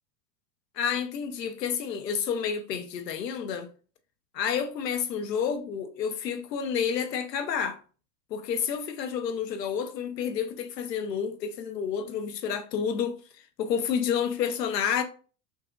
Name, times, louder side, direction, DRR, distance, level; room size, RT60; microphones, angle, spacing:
voice 1, 0.7-3.7 4.3-7.8 8.3-13.2 13.6-15.0, left 7 dB, 80° left, 0.7 m, -29 dB
5.5 x 2.8 x 2.3 m
hypercardioid pair, 80°, 49 cm